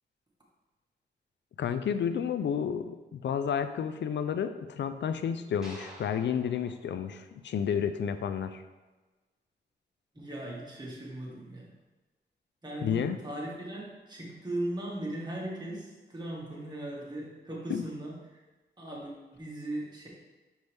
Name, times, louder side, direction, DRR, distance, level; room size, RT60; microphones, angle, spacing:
voice 1, 1.6-8.6 12.8-13.2 17.7-17.9, left 8 dB, 85° left, 10 dB, 0.4 m, -31 dB
sound 1, 5.6-8.0, equal, 5° right, 2.1 m, -51 dB
voice 2, 10.2-11.7 12.6-18.2 18.8-20.1, right 1 dB, 25° right, -4 dB, 1.7 m, -38 dB
6.2 x 5.4 x 3.4 m, 1.2 s
wide cardioid pair, 100°, 18 cm